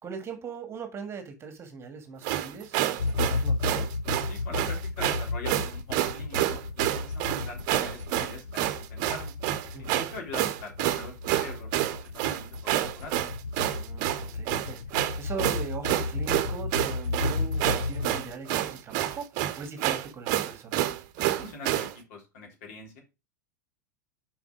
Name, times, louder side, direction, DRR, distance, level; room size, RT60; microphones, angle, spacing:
voice 1, 0.0-3.9 9.7-10.1 13.7-20.9, right 5 dB, 25° right, 1.7 m, -40 dB
sound 1, 2.2-21.9, right 13 dB, 45° right, 0.9 m, -28 dB
sound 2, 3.0-18.6, left 3 dB, 80° left, 0.4 m, -33 dB
voice 2, 4.3-9.3 9.8-13.2 21.2-23.0, left 3 dB, 55° left, 3.7 m, -43 dB
7.0 x 5.3 x 4.9 m
figure-of-eight pair, 90°, 10 cm